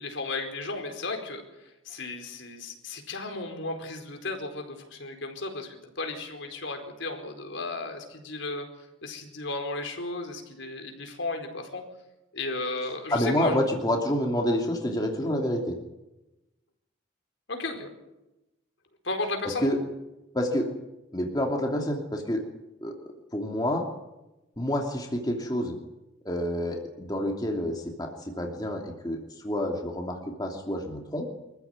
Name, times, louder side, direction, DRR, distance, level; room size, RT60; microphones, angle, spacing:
voice 1, 0.0-1.4 1.8-8.7 9.0-11.8 12.3-13.6 17.5-17.9 19.0-19.7, left 2 dB, 65° left, 4 dB, 4.6 m, -34 dB
voice 2, 13.1-15.8 19.4-19.8 20.3-20.7 21.1-22.4 22.8-23.0 23.3-23.8 24.6-25.8 26.2-28.1 28.4-29.2 29.4-31.3, left 1 dB, 20° left, 1 dB, 2.8 m, -28 dB
25.5 x 15.0 x 9.5 m, 0.97 s
head